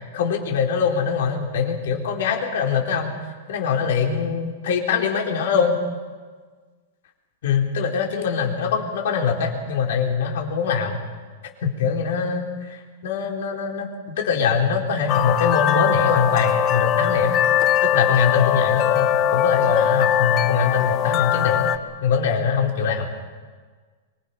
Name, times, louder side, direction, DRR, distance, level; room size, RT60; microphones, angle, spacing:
voice 1, 0.1-3.1 3.5-5.8 7.4-11.0 11.6-17.4 17.8-21.7 22.0-23.1, left 6 dB, 60° left, 1 dB, 4.2 m, -23 dB
sound 1, 15.1-21.8, left 10 dB, 20° left, 0.8 m, -21 dB
25.5 x 23.5 x 5.7 m, 1.4 s
supercardioid pair, 170°, 0 cm